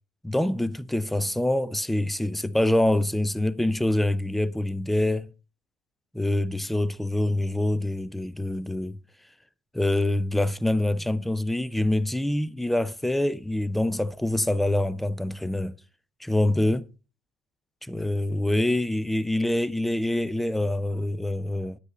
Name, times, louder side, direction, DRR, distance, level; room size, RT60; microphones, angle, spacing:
voice 1, 0.2-5.3 6.1-9.0 9.7-15.7 16.2-16.9 17.8-21.8, left 1 dB, 5° left, 0.7 m, -25 dB
10.0 x 9.1 x 3.9 m
hypercardioid pair, 75°, 4 cm